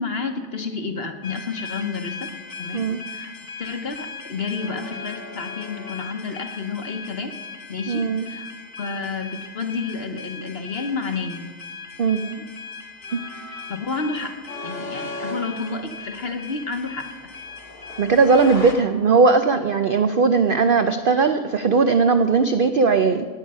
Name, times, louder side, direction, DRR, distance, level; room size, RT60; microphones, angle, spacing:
voice 1, 0.0-2.3 2.6-3.3 3.6-7.3 7.7-8.5 8.8-11.5 13.7-14.4 14.6-17.3, left 4 dB, 45° left, 6 dB, 1.1 m, -30 dB
sound 1, 1.2-18.7, left 4 dB, 70° left, 2.3 m, -37 dB
voice 2, 7.9-8.3 12.0-12.4 13.1-13.2 18.0-23.3, right 4 dB, 70° right, 8 dB, 0.5 m, -18 dB
17.5 x 8.7 x 5.5 m, 1.5 s
omnidirectional pair, 1.7 m